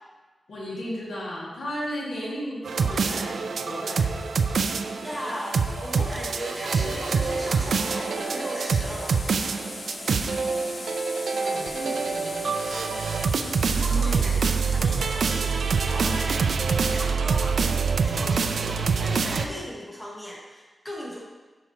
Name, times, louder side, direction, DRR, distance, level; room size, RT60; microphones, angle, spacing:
voice 1, 0.5-4.2 11.3-13.2 13.7-14.4 16.0-16.4, equal, 85° left, -6 dB, 2.2 m, -35 dB
sound 1, 2.6-19.5, right 5 dB, 70° right, 0.4 m, -25 dB
sound 2, 3.9-16.3, left 3 dB, 40° left, 0.6 m, -42 dB
voice 2, 5.0-9.2 13.8-15.5 15.9-16.4 16.9-21.2, equal, 10° left, -4 dB, 1.2 m, -37 dB
10.0 x 4.8 x 3.0 m, 1.2 s
wide cardioid pair, 145°, 0 cm